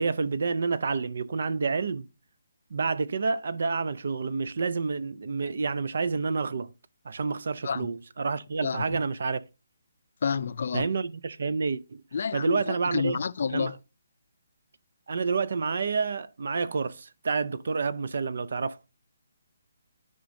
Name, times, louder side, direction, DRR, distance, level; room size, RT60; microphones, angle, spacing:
voice 1, 0.0-2.1 2.7-6.7 7.0-9.4 10.7-12.0 12.3-13.2 13.5-13.7 15.1-18.8, right 4 dB, 60° right, 0.6 m, -29 dB
voice 2, 10.2-10.9 12.1-13.8, left 6 dB, 50° left, 0.4 m, -29 dB
13.5 x 5.1 x 2.7 m
hypercardioid pair, 170°, 0 cm